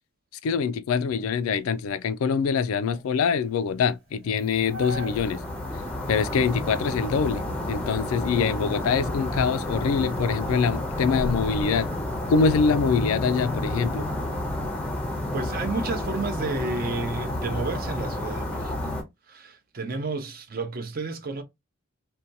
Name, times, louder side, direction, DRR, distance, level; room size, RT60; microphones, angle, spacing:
voice 1, 0.4-5.4 6.1-11.9 12.3-14.0, left 5 dB, 85° left, 0.3 m, -24 dB
sound 1, 1.1-5.5 5.9-6.0 6.6-7.0 7.3-9.4 9.8-12.2, equal, 80° right, 1.0 m, -41 dB
sound 2, 4.5-19.0, left 1 dB, 5° left, 0.5 m, -30 dB
voice 2, 15.3-19.0 19.3-21.4, right 3 dB, 45° right, 0.5 m, -31 dB
2.7 x 2.2 x 2.6 m
head